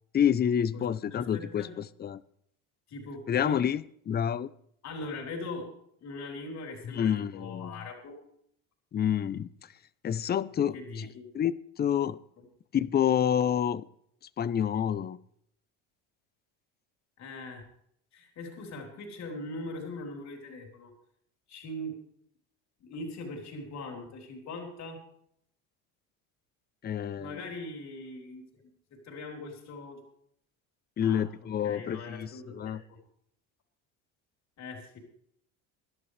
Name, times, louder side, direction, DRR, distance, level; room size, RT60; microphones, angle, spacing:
voice 1, 0.1-2.2 3.3-4.5 6.9-7.8 8.9-9.5 10.0-11.1 11.3-12.2 12.7-13.8 14.4-15.2 26.8-27.4 31.0-32.8, left 9 dB, 30° left, 0.7 m, -28 dB
voice 2, 1.1-1.8 2.9-3.7 4.8-5.7 6.0-8.2 10.7-11.2 17.2-17.6 18.1-20.9 21.5-22.0 22.8-25.0 27.2-28.6 28.9-30.0 31.0-31.3 31.6-33.0 34.6-35.0, left 2 dB, 50° left, 4.1 m, -41 dB
23.5 x 11.5 x 3.4 m
supercardioid pair, 100°, 34 cm